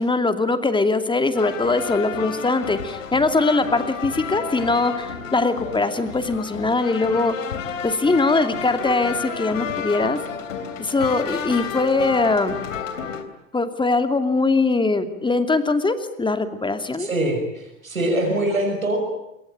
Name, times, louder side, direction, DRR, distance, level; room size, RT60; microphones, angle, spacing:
voice 1, 0.0-7.4 7.8-10.2 10.8-12.6 13.5-17.1, left 3 dB, 10° left, 10 dB, 2.6 m, -21 dB
sound 1, 1.3-13.2, left 6 dB, 70° left, 3.4 m, -31 dB
voice 2, 17.0-19.0, right 1 dB, 80° right, 3 dB, 6.5 m, -23 dB
26.5 x 24.0 x 9.0 m, 0.87 s
figure-of-eight pair, 80°, 40 cm